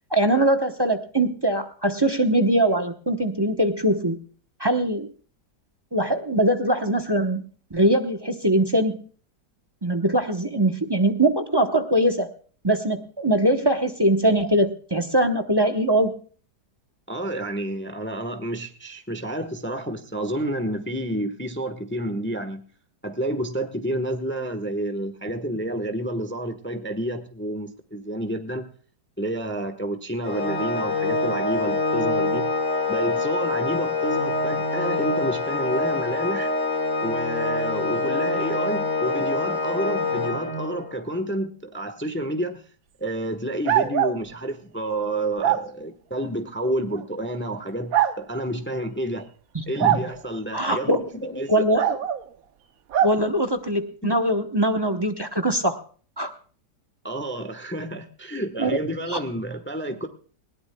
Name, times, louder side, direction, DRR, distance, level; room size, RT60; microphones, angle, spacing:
voice 1, 0.1-4.2 4.6-5.1 5.9-7.4 7.7-9.0 9.8-12.3 12.6-16.2 49.5-49.6 50.5-51.0 51.5-52.0 53.0-55.8 56.2-56.3 58.6-58.8 59.1-59.2, right 1 dB, 20° right, 7 dB, 0.7 m, -22 dB
voice 2, 17.1-22.6 23.0-28.7 29.2-32.5 32.9-36.5 37.0-42.6 43.0-49.3 49.7-51.6 54.0-54.1 57.0-60.1, right 1 dB, 10° left, 8 dB, 0.9 m, -29 dB
Organ, 30.2-41.0, left 3 dB, 50° left, 2.3 m, -25 dB
sound 1, 43.7-44.2 45.4-45.6 46.9-47.0 47.9-48.1 49.8-50.1 51.8-52.2 52.9-53.2, right 10 dB, 60° right, 1.1 m, -21 dB
20.5 x 17.5 x 2.2 m, 0.43 s
omnidirectional pair, 1.8 m